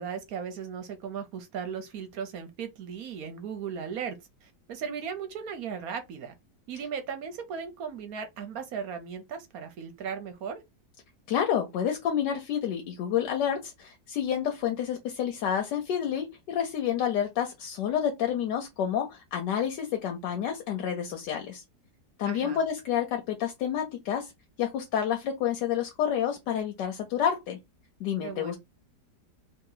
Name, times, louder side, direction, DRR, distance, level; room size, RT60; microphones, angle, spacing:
voice 1, 0.0-6.3 6.7-10.6 22.2-22.6 28.2-28.6, right 7 dB, 65° right, 1.0 m, -37 dB
voice 2, 11.3-21.6 22.2-24.3 24.6-27.6 28.0-28.6, left 9 dB, 80° left, 1.3 m, -29 dB
2.9 x 2.7 x 3.8 m
omnidirectional pair, 1.8 m